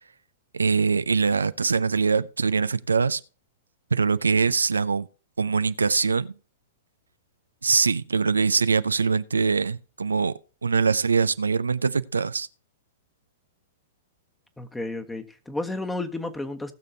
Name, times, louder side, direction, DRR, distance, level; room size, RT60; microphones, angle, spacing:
voice 1, 0.5-3.2 3.9-5.1 5.4-6.3 7.6-10.3 10.6-12.5, right 5 dB, 90° right, 0.5 m, -23 dB
voice 2, 14.6-16.7, left 2 dB, 5° left, 1.4 m, -32 dB
19.0 x 6.7 x 2.7 m
hypercardioid pair, 110°, 0 cm